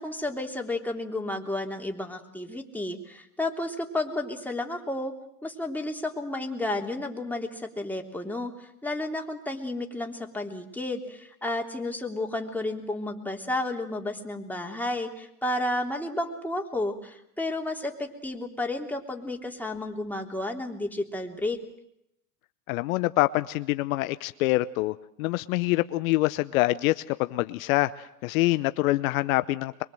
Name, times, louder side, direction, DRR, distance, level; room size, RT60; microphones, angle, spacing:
voice 1, 0.0-5.1 5.4-21.6, left 2 dB, 5° left, 2 dB, 3.4 m, -32 dB
voice 2, 22.7-29.8, left 18 dB, 65° left, 13 dB, 0.9 m, -25 dB
23.5 x 23.5 x 7.8 m, 0.79 s
hypercardioid pair, 100°, 44 cm